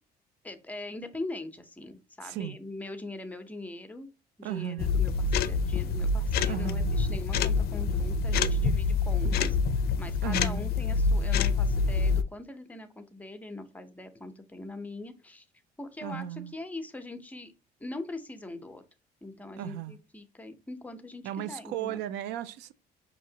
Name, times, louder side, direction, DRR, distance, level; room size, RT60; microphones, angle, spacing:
voice 1, 0.4-4.1 4.4-9.6 10.0-15.5 15.8-17.5 17.8-18.8 19.2-21.2 21.5-22.0, left 2 dB, 10° left, 0.7 m, -42 dB
voice 2, 2.2-2.6 4.4-4.9 6.5-7.0 9.3-9.5 10.2-10.7 16.0-16.5 19.6-20.0 21.2-22.7, right 10 dB, 90° right, 0.4 m, -35 dB
sound 1, 4.8-12.2, left 4 dB, 65° left, 0.4 m, -26 dB
5.0 x 2.8 x 2.7 m
cardioid pair, 110°, 17 cm